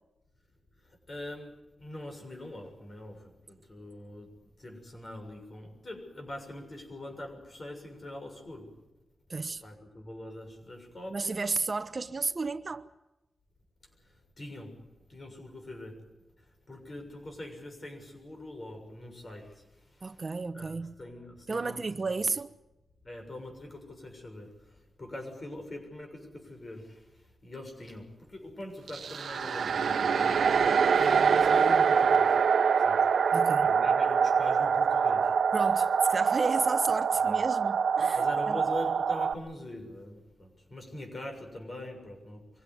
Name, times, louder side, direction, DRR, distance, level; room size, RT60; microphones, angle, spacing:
voice 1, 0.8-8.7 9.3-11.4 14.0-14.8 15.1-16.0 16.4-20.3 20.5-22.3 23.0-27.1 27.4-32.4 32.8-33.1 33.6-35.4 37.3-37.4 38.2-42.6, left 1 dB, 40° left, 6.8 m, -43 dB
voice 2, 9.3-9.6 11.1-12.9 20.0-20.9 21.5-22.5 33.3-33.7 35.5-38.6, right 3 dB, 40° right, 1.0 m, -32 dB
sound 1, 28.9-39.3, right 6 dB, 80° right, 1.1 m, -25 dB
24.0 x 16.5 x 9.5 m
wide cardioid pair, 90°, 0 cm